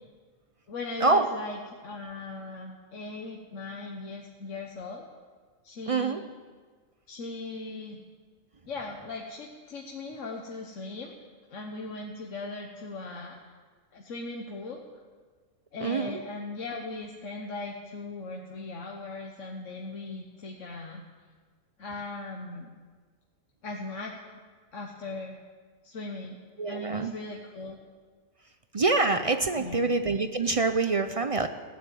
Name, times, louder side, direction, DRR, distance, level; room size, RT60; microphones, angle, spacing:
voice 1, 0.7-5.0 5.6-6.3 7.1-8.0 8.7-11.1 11.5-13.4 13.9-14.8 15.7-21.0 21.8-22.7 23.6-24.2 24.7-25.4 25.8-26.4 26.7-27.8 29.6-29.9, left 3 dB, 70° left, 0 dB, 1.5 m, -38 dB
voice 2, 5.9-6.2 15.8-16.2 26.6-27.1 28.7-31.5, right 3 dB, 45° right, 8 dB, 0.4 m, -25 dB
15.5 x 9.9 x 7.6 m, 1.5 s
omnidirectional pair, 1.4 m